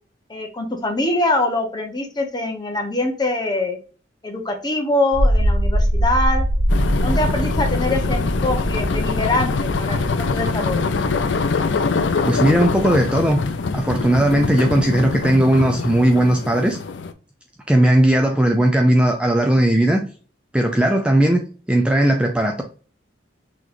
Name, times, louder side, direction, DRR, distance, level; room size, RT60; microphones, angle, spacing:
voice 1, 0.3-3.8 4.2-6.4 7.0-10.0 10.3-10.9, left 2 dB, 25° left, 1.0 m, -23 dB
sound 1, 5.1-15.2, equal, 70° right, 1.8 m, -23 dB
sound 2, 6.7-17.1, left 4 dB, 75° left, 0.5 m, -24 dB
voice 2, 12.3-13.4 13.7-16.8 17.7-20.0 20.5-22.6, right 1 dB, 5° right, 0.5 m, -17 dB
6.1 x 3.1 x 2.6 m
head